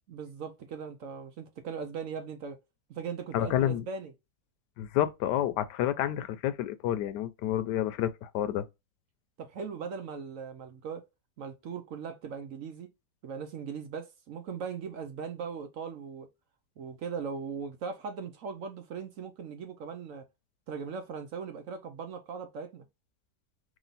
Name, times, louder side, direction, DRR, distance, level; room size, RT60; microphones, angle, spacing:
voice 1, 0.1-2.6 2.9-4.1 9.4-11.1 11.4-12.9 13.2-16.3 16.8-20.2 20.7-22.8, right 6 dB, 65° right, 1.0 m, -39 dB
voice 2, 3.3-3.9 4.8-8.7, left 11 dB, 90° left, 1.2 m, -29 dB
3.2 x 3.0 x 3.9 m
omnidirectional pair, 1.7 m